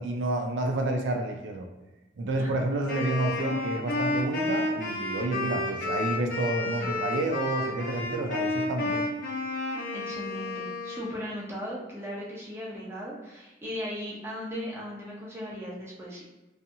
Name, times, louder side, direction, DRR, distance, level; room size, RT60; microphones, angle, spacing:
voice 1, 0.0-1.7 2.2-9.0, right 2 dB, 85° right, 3 dB, 0.4 m, -29 dB
Wind instrument woodwind instrument, 2.9-11.3, left 2 dB, 50° left, 0.8 m, -31 dB
voice 2, 9.9-16.2, equal, 15° right, -5 dB, 0.7 m, -37 dB
2.6 x 2.3 x 2.7 m, 1.1 s
head